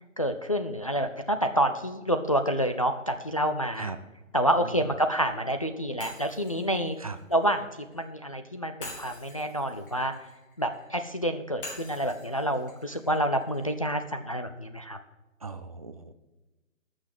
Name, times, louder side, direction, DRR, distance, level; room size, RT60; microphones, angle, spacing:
voice 1, 0.2-3.9 4.3-7.0 7.3-7.7 7.9-10.1 10.6-15.0, equal, 30° left, 6 dB, 0.4 m, -28 dB
Shatter, 6.0-8.1 8.8-10.9 11.6-13.7, left 2 dB, 45° left, 4.4 m, -46 dB
voice 2, 15.4-16.1, right 4 dB, 30° right, 9 dB, 0.5 m, -38 dB
12.5 x 6.2 x 7.4 m, 1.1 s
figure-of-eight pair, 145°, 39 cm